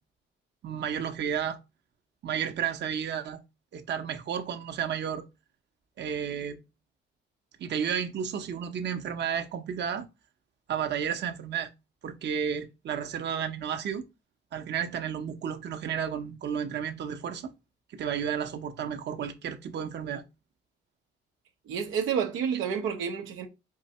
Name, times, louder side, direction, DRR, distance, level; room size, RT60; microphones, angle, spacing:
voice 1, 0.6-1.6 2.2-3.4 3.7-5.2 6.0-6.6 7.6-10.1 10.7-11.7 12.0-14.1 14.5-17.5 17.9-20.2, right 8 dB, 60° right, 0.9 m, -32 dB
voice 2, 21.7-23.5, right 7 dB, 90° right, 0.8 m, -29 dB
4.7 x 2.6 x 4.2 m
cardioid pair, 90°, 20 cm